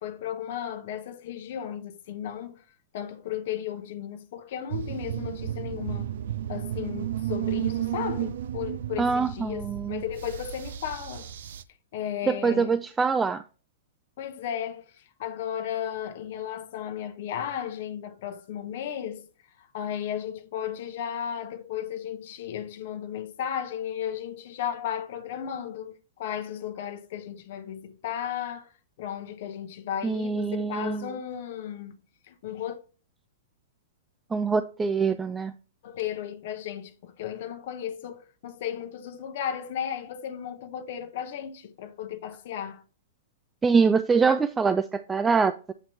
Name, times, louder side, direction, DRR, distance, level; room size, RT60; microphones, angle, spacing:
voice 1, 0.0-2.6 2.9-6.1 6.5-11.3 11.9-12.8 14.2-19.3 19.6-28.7 29.0-32.0 32.3-32.8 35.8-42.8, left 9 dB, 60° left, 0.9 m, -34 dB
sound 1, 4.7-11.6, right 12 dB, 70° right, 0.5 m, -33 dB
voice 2, 9.0-10.0 12.3-13.4 30.0-31.0 34.3-35.5 43.6-45.7, right 5 dB, 15° right, 0.4 m, -24 dB
7.9 x 3.0 x 5.4 m
hypercardioid pair, 125°, 0 cm